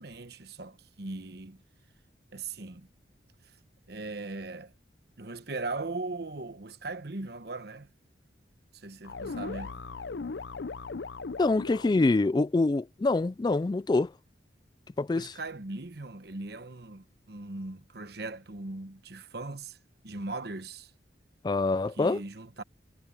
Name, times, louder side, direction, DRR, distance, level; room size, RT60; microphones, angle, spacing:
voice 1, 0.0-1.6 2.3-2.9 3.4-3.5 3.9-4.7 5.2-7.9 8.7-9.8 15.1-19.8 20.0-20.9 22.0-22.6, right 3 dB, 60° right, 1.1 m, -39 dB
sound 1, 9.0-12.2, left 4 dB, 75° left, 0.6 m, -38 dB
voice 2, 11.4-14.1 15.0-15.3 21.4-22.2, left 3 dB, 25° left, 0.3 m, -25 dB
head